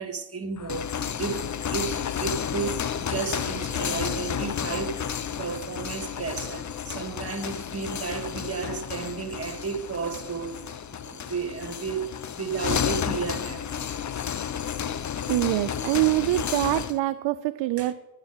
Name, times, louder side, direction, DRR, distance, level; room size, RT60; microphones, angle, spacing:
voice 1, 0.0-5.1 5.4-10.6 11.0-13.7 17.8-17.9, right 5 dB, 30° right, 2.3 m, -33 dB
sound 1, 0.6-17.0, left 8 dB, 35° left, 0.9 m, -31 dB
voice 2, 15.3-17.9, right 17 dB, 60° right, 0.7 m, -24 dB
11.0 x 8.2 x 8.5 m
hypercardioid pair, 60°, 50 cm